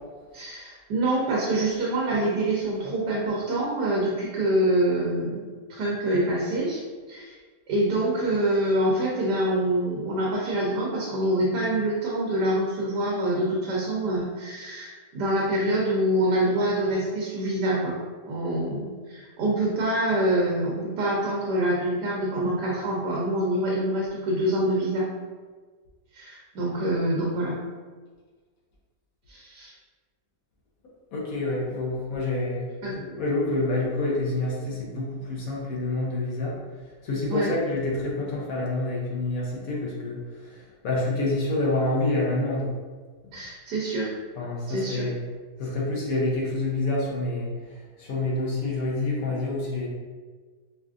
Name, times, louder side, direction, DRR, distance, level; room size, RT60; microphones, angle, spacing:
voice 1, 0.3-5.4 5.7-6.8 7.1-7.4 7.7-18.0 18.3-25.1 26.1-27.6 29.3-29.7 32.8-32.9 37.3-37.5 43.3-44.1 44.7-45.1, right 1 dB, 90° right, -4 dB, 1.3 m, -25 dB
voice 2, 31.1-36.5 37.0-40.2 40.4-42.7 44.4-45.2 45.6-47.5 48.0-49.9, left 2 dB, 65° left, -4 dB, 1.1 m, -27 dB
4.9 x 2.4 x 2.4 m, 1.4 s
omnidirectional pair, 1.7 m